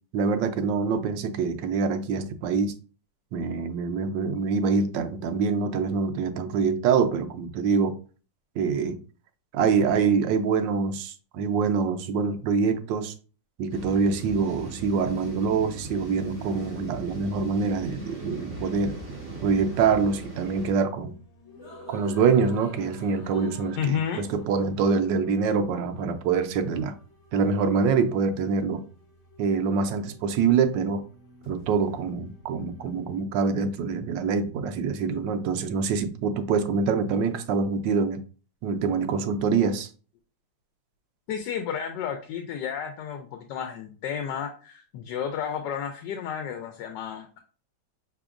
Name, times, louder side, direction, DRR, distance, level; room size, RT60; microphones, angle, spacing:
voice 1, 0.1-2.8 3.3-8.0 8.6-9.0 9.5-13.1 13.6-19.0 19.4-21.1 21.9-26.9 27.3-28.8 29.4-31.0 31.5-38.2 38.6-39.9, right 5 dB, 85° right, 1.3 m, -25 dB
sound 1, 13.7-33.2, left 2 dB, 45° left, 1.4 m, -52 dB
sound 2, 13.7-20.7, right 2 dB, 20° right, 1.9 m, -39 dB
voice 2, 23.8-24.2 41.3-47.4, left 8 dB, 80° left, 1.2 m, -32 dB
5.9 x 3.5 x 2.4 m
omnidirectional pair, 1.9 m